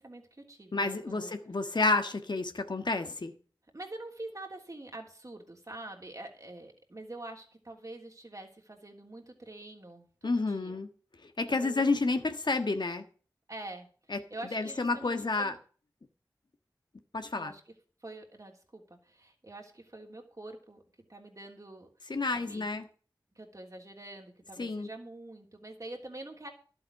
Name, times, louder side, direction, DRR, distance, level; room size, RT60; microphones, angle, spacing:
voice 1, 0.0-1.3 3.7-10.8 11.5-11.8 13.5-15.6 17.3-17.7 18.0-20.8 21.1-21.9 22.3-22.7 23.3-26.5, right 2 dB, 45° right, 3.3 m, -46 dB
voice 2, 0.7-3.3 10.2-10.9 11.4-13.0 14.1-14.2 14.5-15.5 17.1-17.5 22.1-22.8 24.6-24.9, left 3 dB, 65° left, 1.5 m, -30 dB
12.0 x 8.0 x 6.5 m
cardioid pair, 40°, 8 cm